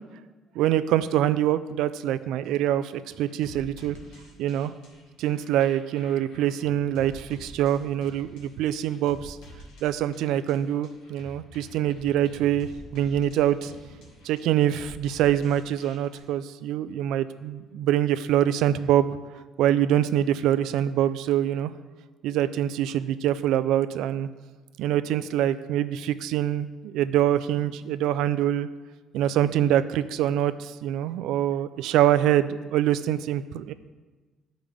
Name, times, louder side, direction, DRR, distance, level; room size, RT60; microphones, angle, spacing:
voice 1, 0.6-2.9 3.2-4.0 4.4-4.7 5.2-9.4 9.8-13.7 14.2-19.2 19.6-21.7 22.2-24.3 24.8-28.7 29.1-33.7, right 11 dB, 75° right, 13 dB, 0.4 m, -24 dB
sound 1, 3.2-16.2, equal, 80° left, 1.8 m, -48 dB
12.5 x 5.1 x 3.5 m, 1.3 s
cardioid pair, 165°, 0 cm